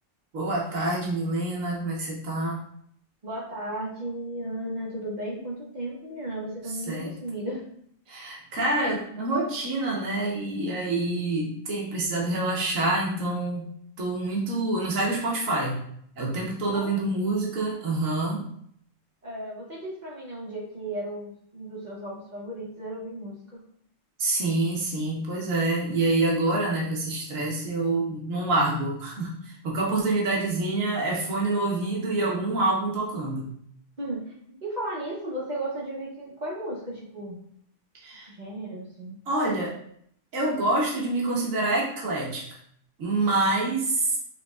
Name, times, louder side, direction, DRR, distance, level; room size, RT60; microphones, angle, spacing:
voice 1, 0.3-2.6 6.9-7.1 8.1-13.7 14.0-15.8 16.2-18.4 24.2-33.5 38.0-38.3 39.3-39.7 40.3-42.4 43.0-44.2, right 2 dB, 85° right, -3 dB, 1.4 m, -26 dB
voice 2, 3.2-7.7 16.7-16.9 19.2-23.6 34.0-37.3 38.3-39.2, right 1 dB, 40° right, -4 dB, 0.9 m, -35 dB
5.1 x 3.5 x 2.3 m, 0.66 s
omnidirectional pair, 1.3 m